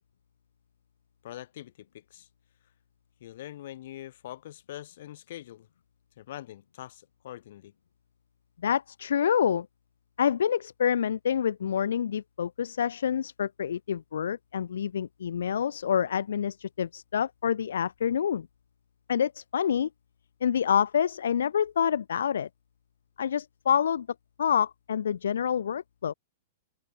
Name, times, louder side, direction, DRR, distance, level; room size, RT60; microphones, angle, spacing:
voice 1, 1.2-2.3 3.2-5.7 6.2-7.7, left 13 dB, 65° left, 7.2 m, -43 dB
voice 2, 8.6-9.7 10.2-18.5 19.1-19.9 20.4-22.5 23.2-24.1 24.4-26.1, left 8 dB, 85° left, 1.1 m, -27 dB
open air
hypercardioid pair, 135°, 0 cm